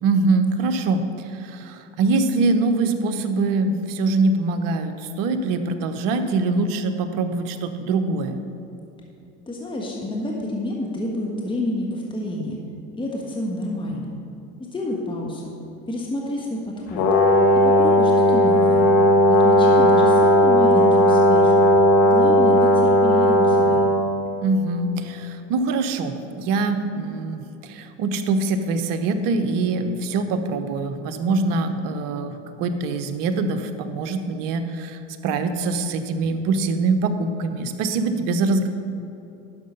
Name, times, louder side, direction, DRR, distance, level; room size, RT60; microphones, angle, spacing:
voice 1, 0.0-8.4 19.6-19.9 24.4-38.7, right 3 dB, 60° right, 8 dB, 1.1 m, -24 dB
voice 2, 9.5-12.6 12.9-14.1 14.7-15.5 15.9-17.0 17.5-18.9 19.4-21.6 22.0-23.8, left 1 dB, 15° left, -2 dB, 1.4 m, -29 dB
Brass instrument, 17.0-24.0, left 1 dB, 65° left, 1.9 m, -16 dB
10.5 x 6.6 x 5.5 m, 2.9 s
hypercardioid pair, 90°, 37 cm